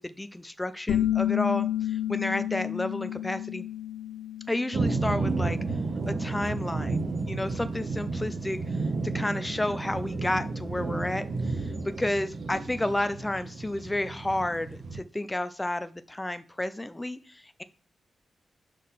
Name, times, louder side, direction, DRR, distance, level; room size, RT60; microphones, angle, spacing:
voice 1, 0.0-3.6 4.5-5.6 6.1-7.0 7.3-8.6 9.0-17.6, left 1 dB, 15° left, 11 dB, 0.5 m, -31 dB
sound 1, 0.9-6.3, left 12 dB, 90° left, 1.0 m, -31 dB
sound 2, 4.7-15.0, right 3 dB, 65° right, 1.1 m, -32 dB
6.5 x 3.9 x 5.6 m, 0.37 s
cardioid pair, 105°, 0 cm